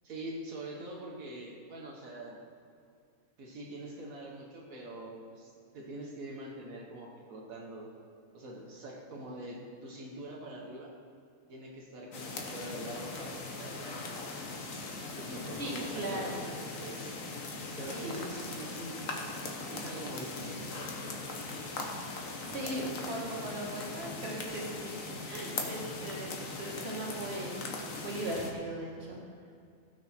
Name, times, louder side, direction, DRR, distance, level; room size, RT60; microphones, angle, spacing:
voice 1, 0.0-2.4 3.4-7.9 8.3-10.9 11.5-14.2 15.2-17.2 17.8-19.1 19.7-20.7, right 1 dB, 85° right, -2 dB, 1.7 m, -44 dB
sound 1, 12.1-28.5, left 3 dB, 75° left, 1.6 m, -40 dB
voice 2, 15.5-16.4 17.9-18.2 22.5-24.9 25.3-27.6 28.0-29.2, right 1 dB, 50° right, -3 dB, 2.1 m, -38 dB
15.5 x 6.3 x 4.4 m, 2.3 s
omnidirectional pair, 1.4 m